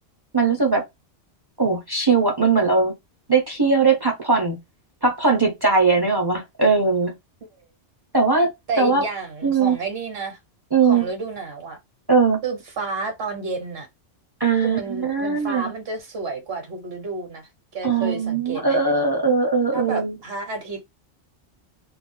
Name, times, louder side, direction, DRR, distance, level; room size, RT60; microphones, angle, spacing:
voice 1, 0.3-0.8 1.6-2.9 3.3-4.6 5.0-7.1 8.1-9.0 9.4-9.8 10.7-11.1 12.1-12.4 14.4-15.7 17.8-20.2, right 4 dB, 30° right, 0.4 m, -20 dB
voice 2, 8.7-10.4 10.8-11.8 12.4-13.9 14.6-18.8 19.7-20.8, right 4 dB, 60° right, 1.0 m, -31 dB
2.4 x 2.2 x 3.6 m
omnidirectional pair, 1.3 m